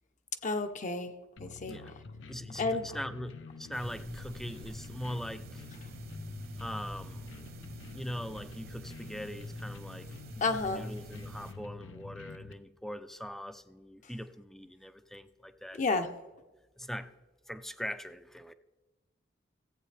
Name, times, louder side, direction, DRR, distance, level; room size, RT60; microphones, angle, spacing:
voice 1, 0.4-1.1 1.4-1.9 2.6-2.8 5.8-5.9 10.4-10.9 15.8-16.1, left 3 dB, 40° left, 0.7 m, -31 dB
sound 1, 1.4-12.5, left 3 dB, 85° left, 0.7 m, -46 dB
voice 2, 2.3-5.6 6.6-7.3 7.9-10.1 10.6-15.8 16.8-17.1 17.5-18.5, equal, ahead, 0.4 m, -41 dB
sound 2, 3.7-11.5, right 2 dB, 55° right, 1.2 m, -49 dB
15.0 x 8.5 x 3.3 m
head